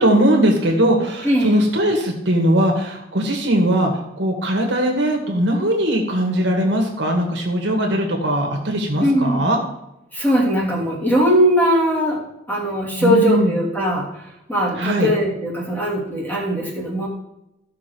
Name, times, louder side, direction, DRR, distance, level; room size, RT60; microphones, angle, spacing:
voice 1, 0.0-9.6 13.0-13.5 14.8-15.1, right 1 dB, 65° right, 1 dB, 2.2 m, -19 dB
voice 2, 1.2-1.7 9.0-9.5 10.1-12.2 12.5-17.1, equal, 10° left, -4 dB, 3.1 m, -20 dB
15.0 x 6.1 x 4.7 m, 0.87 s
head